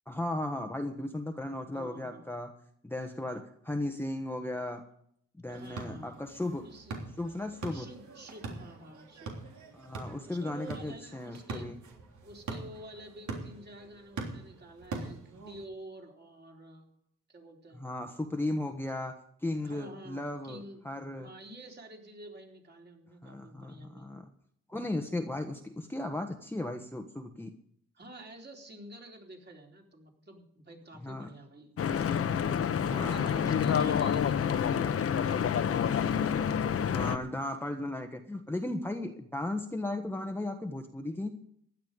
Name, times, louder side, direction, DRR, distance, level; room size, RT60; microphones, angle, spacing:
voice 1, 0.1-2.5 2.8-4.8 5.4-6.6 7.2-7.9 9.7-11.8 17.7-21.3 23.2-24.3 24.7-27.5 31.0-31.3 32.8-33.5 36.9-41.3, left 1 dB, 5° left, 5 dB, 1.3 m, -36 dB
voice 2, 1.7-2.3 5.5-6.1 6.6-7.0 7.7-9.4 10.3-11.7 12.2-16.9 17.3-17.9 19.6-20.8 21.2-24.1 27.9-31.7 32.0-32.3 32.9-36.4, right 1 dB, 35° right, 1 dB, 4.0 m, -49 dB
sound 1, 5.5-15.6, right 3 dB, 70° right, 3.5 m, -43 dB
Stream / Boat Water vehicle, 31.8-37.2, left 8 dB, 50° left, 1.1 m, -28 dB
15.5 x 10.5 x 5.2 m, 0.67 s
cardioid pair, 90°, 30 cm